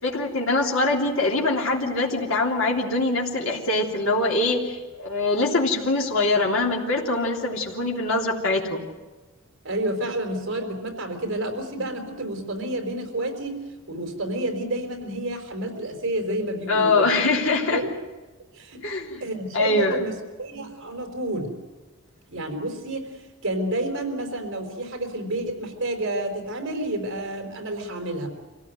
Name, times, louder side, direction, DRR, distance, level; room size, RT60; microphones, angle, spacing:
voice 1, 0.0-8.9 16.7-17.8 18.8-19.2 19.5-20.0, left 2 dB, 70° left, -1 dB, 3.3 m, -23 dB
voice 2, 9.6-13.6 13.9-17.2 17.7-17.9 18.5-18.8 19.2-21.5 22.3-23.1 23.4-28.3, right 1 dB, 60° right, 5 dB, 4.7 m, -29 dB
25.0 x 16.5 x 9.5 m, 1.2 s
head